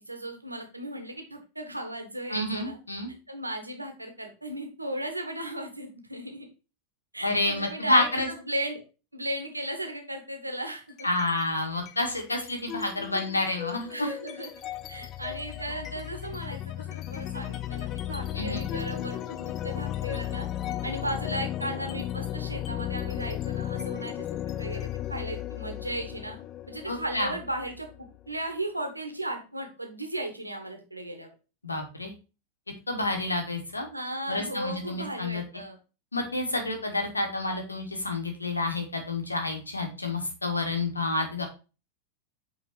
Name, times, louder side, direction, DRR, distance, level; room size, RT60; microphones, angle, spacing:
voice 1, 0.1-2.8 3.3-6.5 7.1-8.8 9.1-11.1 13.9-20.5 20.8-26.4 26.7-27.9 28.3-31.3 33.9-35.8, right 1 dB, 85° right, 5 dB, 1.6 m, -36 dB
voice 2, 2.3-3.1 7.2-8.3 11.0-13.9 18.4-18.6 26.9-27.3 31.6-32.1 32.9-33.9 34.3-35.4 36.1-41.4, left 2 dB, 80° left, 3 dB, 1.8 m, -29 dB
sound 1, 10.9-11.4 11.8-28.4, left 12 dB, 30° left, 0.5 m, -35 dB
8.1 x 4.0 x 4.4 m, 0.32 s
figure-of-eight pair, 90°, 0 cm